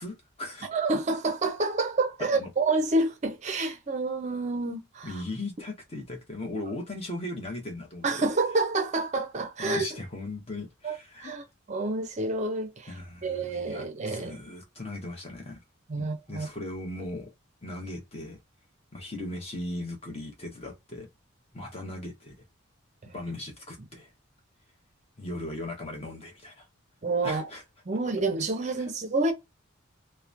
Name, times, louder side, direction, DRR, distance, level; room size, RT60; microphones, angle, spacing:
voice 1, 0.0-0.7 2.3-2.5 5.0-8.1 9.6-11.4 12.9-15.6 16.0-17.3 17.6-18.4 18.9-21.1 21.5-22.4 23.1-24.1 25.2-26.7 27.2-27.6 28.7-28.9, left 1 dB, 30° left, 0.8 m, -38 dB
voice 2, 0.7-5.1 8.0-9.8 10.8-11.4 11.7-12.9 13.2-14.4 15.9-16.5 27.0-27.4 27.9-29.3, right 3 dB, 35° right, 0.5 m, -28 dB
2.9 x 2.1 x 2.4 m
head